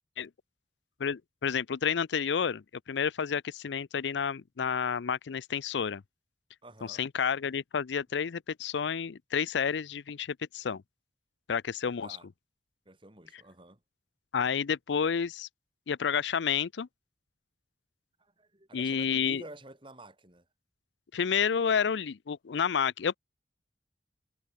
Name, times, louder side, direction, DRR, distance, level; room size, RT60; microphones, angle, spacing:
voice 1, 1.0-6.0 6.9-10.8 11.5-12.1 14.3-15.5 15.9-16.9 18.7-19.4 21.1-23.2, left 7 dB, 90° left, 0.5 m, -30 dB
voice 2, 6.6-7.0 12.0-12.3 12.8-13.8 18.2-20.4, right 1 dB, 30° right, 6.7 m, -50 dB
head